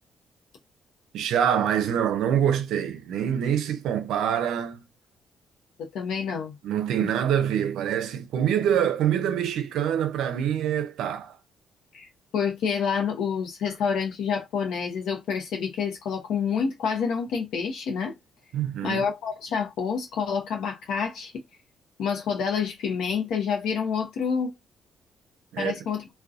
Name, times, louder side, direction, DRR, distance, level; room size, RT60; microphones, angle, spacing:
voice 1, 1.1-4.8 6.6-11.4 18.5-19.0 25.5-25.8, right 9 dB, 85° right, 0.5 m, -25 dB
voice 2, 5.8-6.6 7.0-7.1 11.9-18.2 18.8-21.4 22.0-24.5 25.6-26.0, left 6 dB, 80° left, 0.6 m, -28 dB
2.6 x 2.2 x 2.3 m
cardioid pair, 90°, 0 cm